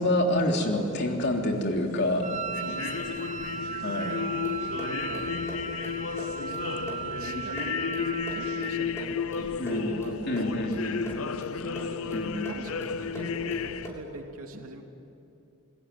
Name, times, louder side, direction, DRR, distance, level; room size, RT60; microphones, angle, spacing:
voice 1, 0.0-2.3 3.8-4.1 9.6-11.1 12.1-12.5, left 1 dB, 50° left, 2 dB, 3.3 m, -27 dB
sound 1, 0.6-13.9, left 6 dB, 75° left, 0.7 m, -33 dB
Wind instrument woodwind instrument, 2.2-8.8, right 6 dB, 35° right, 0.8 m, -36 dB
voice 2, 2.6-3.3 4.0-4.3 4.8-5.3 6.5-14.8, right 2 dB, 75° right, 3 dB, 2.8 m, -43 dB
sound 2, 4.4-14.2, equal, 15° left, 6.4 m, -43 dB
28.0 x 21.0 x 9.5 m, 2.7 s
head